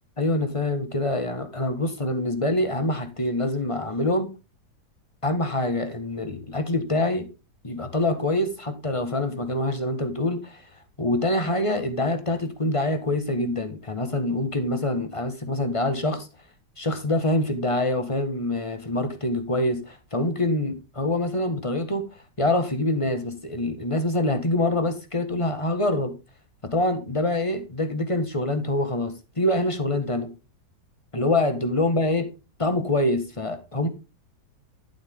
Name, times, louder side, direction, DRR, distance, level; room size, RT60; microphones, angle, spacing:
voice 1, 0.2-4.3 5.2-7.3 7.6-10.7 11.0-16.3 16.8-22.1 22.4-26.1 26.6-30.3 31.1-32.3 32.6-33.9, left 1 dB, 20° left, 1.5 m, -25 dB
11.5 x 7.8 x 3.8 m
omnidirectional pair, 1.8 m